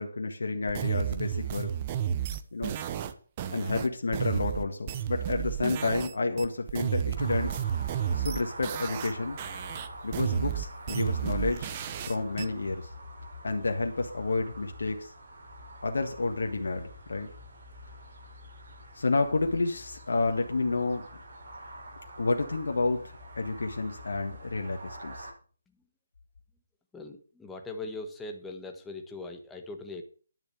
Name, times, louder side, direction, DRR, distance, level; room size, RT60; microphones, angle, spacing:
voice 1, 0.0-1.7 2.5-2.8 3.5-7.6 8.1-9.4 10.0-11.7 12.0-12.9 13.4-15.1 15.8-17.3 18.9-21.1 22.2-25.3, left 3 dB, 70° left, 4 dB, 1.6 m, -30 dB
sound 1, 0.7-6.1 6.4-9.1 9.4-12.5, right 9 dB, 30° right, 1.0 m, -32 dB
sound 2, 7.1-25.3, equal, 55° right, 5.4 m, -45 dB
voice 2, 26.9-30.0, left 2 dB, 10° left, 4 dB, 1.4 m, -40 dB
10.5 x 6.9 x 6.8 m, 0.41 s
figure-of-eight pair, 150°, 0 cm